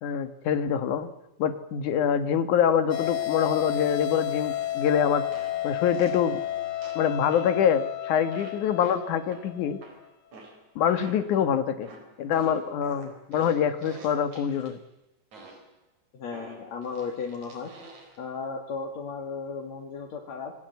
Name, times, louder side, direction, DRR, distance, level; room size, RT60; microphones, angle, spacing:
voice 1, 0.0-1.1 1.4-5.2 5.6-6.4 7.0-9.8 10.8-11.9 12.2-14.8, left 8 dB, 85° left, 11 dB, 3.1 m, -25 dB
sound 1, 2.9-9.8, left 13 dB, 45° left, 1.8 m, -32 dB
sound 2, 4.8-4.9 5.3-6.3 6.8-7.6 8.3-11.4 11.8-14.8 15.3-15.8 16.3-18.2, right 2 dB, 70° right, 5.6 m, -48 dB
voice 2, 16.1-17.7 18.2-20.5, left 5 dB, 65° left, 2 dB, 3.5 m, -35 dB
27.0 x 21.5 x 8.2 m, 0.87 s
omnidirectional pair, 3.4 m